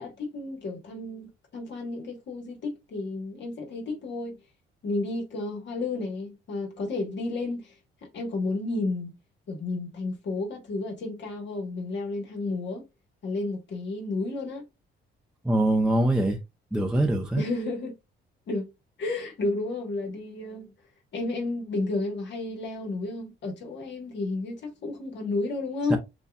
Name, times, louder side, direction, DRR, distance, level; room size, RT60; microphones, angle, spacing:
voice 1, 0.0-4.4 4.8-7.8 8.1-9.1 9.5-12.8 13.2-14.6 17.4-18.0 18.5-18.7 19.0-20.7 21.1-26.0, left 2 dB, 65° left, 1.6 m, -32 dB
voice 2, 15.4-16.4 16.7-17.4 25.9-26.0, right 1 dB, 5° right, 0.7 m, -23 dB
6.8 x 2.4 x 2.4 m
cardioid pair, 90°, 20 cm